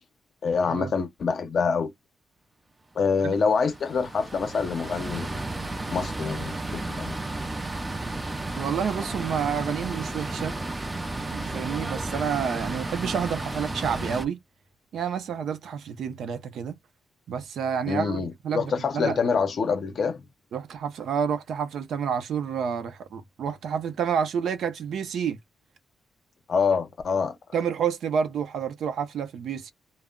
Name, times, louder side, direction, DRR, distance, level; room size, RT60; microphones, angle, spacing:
voice 1, 0.4-1.9 3.0-7.2 17.9-20.2 26.5-27.4, left 5 dB, 50° left, 0.5 m, -26 dB
sound 1, 3.3-14.2, right 2 dB, 15° right, 0.4 m, -33 dB
voice 2, 8.5-10.5 11.2-14.4 14.9-16.7 17.3-19.2 20.5-25.4 27.5-29.7, right 7 dB, 75° right, 0.5 m, -29 dB
2.1 x 2.0 x 3.6 m
wide cardioid pair, 150°, 0 cm